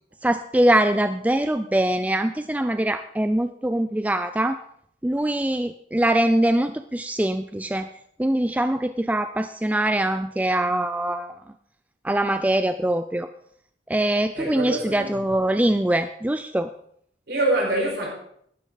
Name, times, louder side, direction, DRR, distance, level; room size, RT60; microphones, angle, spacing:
voice 1, 0.2-4.6 5.0-7.9 8.2-11.3 12.0-13.3 13.9-16.7, right 1 dB, 10° right, 0.4 m, -23 dB
voice 2, 14.4-15.6 17.3-18.1, right 1 dB, 60° right, 5.0 m, -26 dB
14.5 x 11.5 x 4.0 m
head